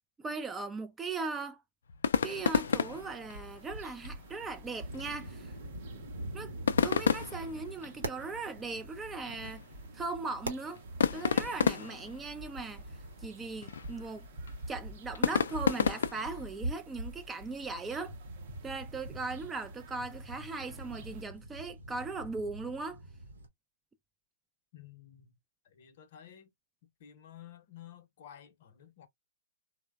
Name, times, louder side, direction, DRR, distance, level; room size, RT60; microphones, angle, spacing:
voice 1, 0.2-1.6 2.2-5.5 6.3-6.5 6.8-9.6 9.9-10.8 11.1-12.8 13.2-14.3 14.7-18.1 18.6-23.0, right 3 dB, 10° right, 0.3 m, -39 dB
sound 1, 1.9-16.5, left 7 dB, 75° left, 0.3 m, -33 dB
sound 2, 2.3-21.2, right 1 dB, 55° right, 0.6 m, -47 dB
sound 3, 4.8-23.5, right 2 dB, 85° right, 0.8 m, -47 dB
voice 2, 24.7-25.4 25.6-26.5 26.8-29.1, left 10 dB, 55° left, 0.7 m, -53 dB
3.0 x 2.1 x 2.2 m
hypercardioid pair, 135°, 0 cm